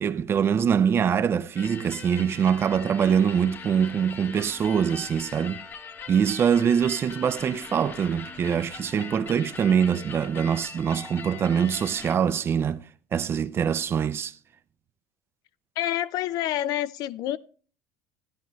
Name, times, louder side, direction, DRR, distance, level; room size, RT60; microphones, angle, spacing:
voice 1, 0.0-5.6 6.1-12.8 13.1-14.3, right 7 dB, 35° right, 0.5 m, -24 dB
sound 1, 1.5-12.2, left 5 dB, 30° left, 0.8 m, -41 dB
voice 2, 15.8-17.4, left 13 dB, 60° left, 0.4 m, -27 dB
13.0 x 10.5 x 3.1 m
supercardioid pair, 110°, 8 cm